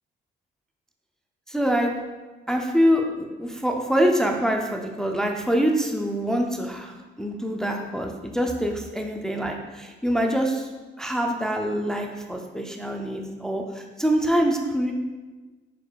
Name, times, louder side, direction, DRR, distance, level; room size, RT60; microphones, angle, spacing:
voice 1, 1.5-1.9 2.5-10.7 11.0-14.9, equal, 5° left, 2 dB, 0.4 m, -25 dB
4.5 x 4.5 x 2.4 m, 1.3 s
cardioid pair, 90°, 20 cm